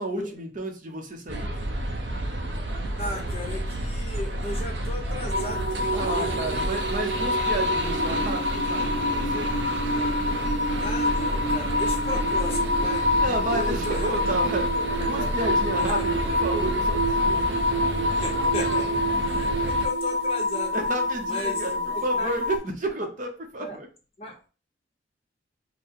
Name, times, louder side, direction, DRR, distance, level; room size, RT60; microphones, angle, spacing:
voice 1, 0.0-1.7 5.9-9.5 13.2-17.9 20.7-23.9, right 1 dB, 45° right, 3 dB, 0.8 m, -32 dB
sound 1, 1.3-19.9, right 1 dB, 90° right, 0.7 m, -31 dB
voice 2, 3.0-6.6 10.8-13.0 13.5-14.2 14.7-15.3 15.8-15.9 18.2-18.9 19.3-20.9 21.3-22.3 23.6-23.8 24.2-24.5, left 2 dB, 35° left, 0 dB, 1.1 m, -36 dB
sound 2, 5.3-22.6, left 1 dB, 70° right, 1.0 m, -26 dB
4.4 x 2.1 x 3.6 m, 0.35 s
head